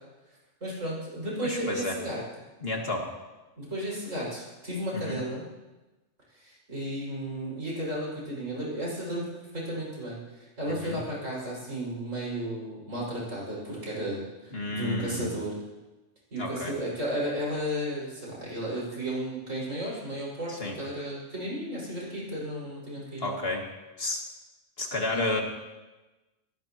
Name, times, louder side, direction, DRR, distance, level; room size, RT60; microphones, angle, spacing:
voice 1, 0.6-2.2 3.6-5.5 6.3-15.6 16.3-23.4 25.1-25.4, right 1 dB, 90° right, -6 dB, 6.4 m, -34 dB
voice 2, 1.4-2.0 2.6-3.1 4.9-5.2 10.7-11.0 14.5-15.3 16.4-16.7 20.6-20.8 23.2-23.6 24.0-24.2 24.8-25.4, left 2 dB, 50° left, 1 dB, 2.1 m, -31 dB
21.5 x 17.0 x 3.0 m, 1.1 s
omnidirectional pair, 1.3 m